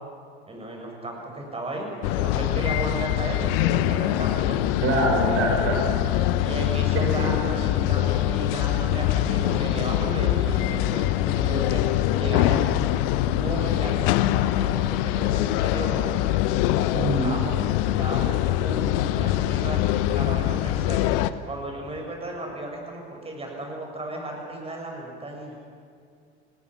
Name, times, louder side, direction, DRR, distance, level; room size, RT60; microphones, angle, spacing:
voice 1, 0.5-4.6 6.4-11.8 12.2-12.6 13.1-16.0 17.2-21.0 21.4-25.5, right 1 dB, 20° right, 1 dB, 6.4 m, -34 dB
sound 1, 2.0-21.3, left 13 dB, 60° left, 1.0 m, -23 dB
voice 2, 4.8-5.8 6.9-7.3 16.9-17.3, right 2 dB, 45° right, 0 dB, 5.5 m, -24 dB
29.0 x 19.0 x 6.1 m, 2.3 s
figure-of-eight pair, 75°, 33 cm